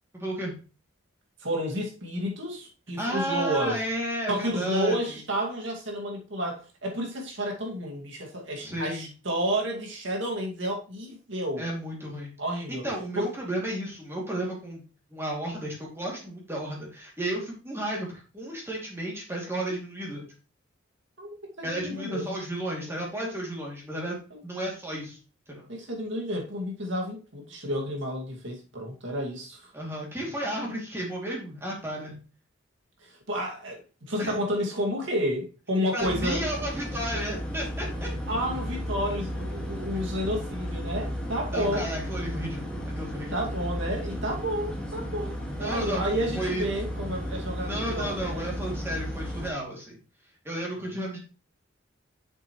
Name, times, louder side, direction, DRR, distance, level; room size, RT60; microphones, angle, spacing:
voice 1, 0.1-0.5 3.0-5.2 8.6-9.1 11.6-12.3 12.7-14.8 15.1-20.2 21.6-24.2 24.4-25.2 25.5-25.6 29.7-32.2 34.2-34.3 35.9-38.1 41.5-43.4 45.6-46.0 46.3-46.7 47.6-50.0 50.4-51.2, right 1 dB, 10° right, 2.6 m, -33 dB
voice 2, 1.4-3.8 4.3-11.7 12.4-12.8 13.1-13.3 21.2-22.5 24.3-24.4 25.7-29.7 33.0-33.8 34.1-36.4 38.3-41.9 43.3-48.4, equal, 65° right, 2.2 m, -31 dB
sound 1, 36.0-49.5, equal, 5° left, 1.8 m, -34 dB
7.8 x 6.9 x 3.1 m
head